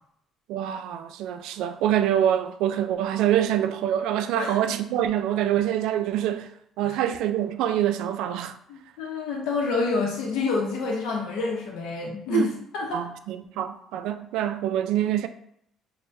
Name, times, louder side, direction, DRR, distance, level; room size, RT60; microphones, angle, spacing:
voice 1, 0.5-6.5 6.8-8.6 12.3-12.5 12.9-15.3, right 11 dB, 80° right, 0.3 m, -25 dB
voice 2, 8.7-12.5 12.7-13.1, left 4 dB, 85° left, 0.7 m, -28 dB
6.4 x 2.2 x 2.6 m
cardioid pair, 145°, 0 cm